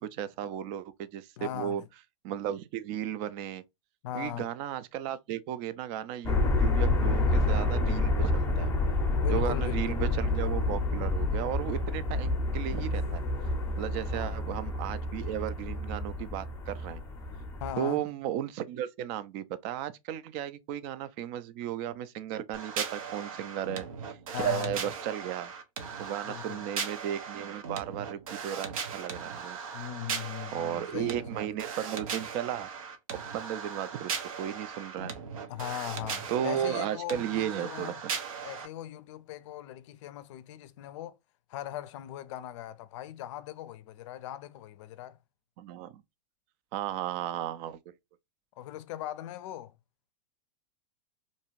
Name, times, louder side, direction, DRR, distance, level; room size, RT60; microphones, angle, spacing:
voice 1, 0.0-1.8 2.2-3.6 4.1-8.7 9.3-13.2 13.8-17.0 17.8-24.2 24.4-25.5 26.0-29.6 30.5-32.7 33.3-35.1 36.3-38.1 45.6-46.0 46.7-47.8, right 11 dB, 45° right, 0.4 m, -35 dB
voice 2, 1.4-1.9 4.0-4.5 9.2-10.0 14.1-14.4 17.6-18.0 24.3-24.8 26.2-26.6 29.7-31.4 35.5-37.9 38.4-41.2 41.5-45.2 48.6-49.7, left 12 dB, 60° left, 0.4 m, -39 dB
sound 1, 6.2-17.7, left 2 dB, 15° left, 0.6 m, -29 dB
sound 2, 22.5-38.7, right 6 dB, 85° right, 0.7 m, -38 dB
2.6 x 2.3 x 3.0 m
hypercardioid pair, 120°, 17 cm